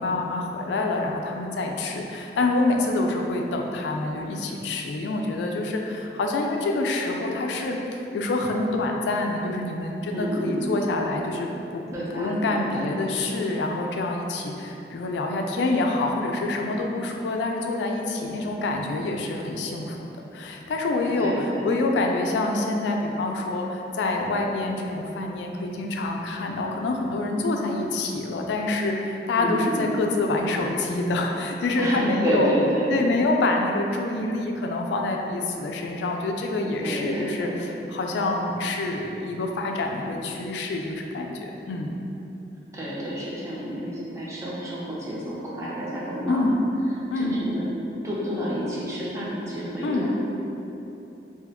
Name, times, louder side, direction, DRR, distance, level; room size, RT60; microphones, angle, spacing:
voice 1, 0.0-11.8 12.1-32.5 32.9-41.9 46.3-46.6 47.1-47.4 49.8-50.1, left 2 dB, 80° left, 2 dB, 0.3 m, -26 dB
voice 2, 10.1-10.8 11.9-13.0 21.1-21.8 29.4-29.9 31.8-33.0 36.8-37.6 42.7-46.5 47.1-47.6 48.0-50.1, equal, 15° right, -7 dB, 0.5 m, -29 dB
2.8 x 2.2 x 3.4 m, 2.9 s
head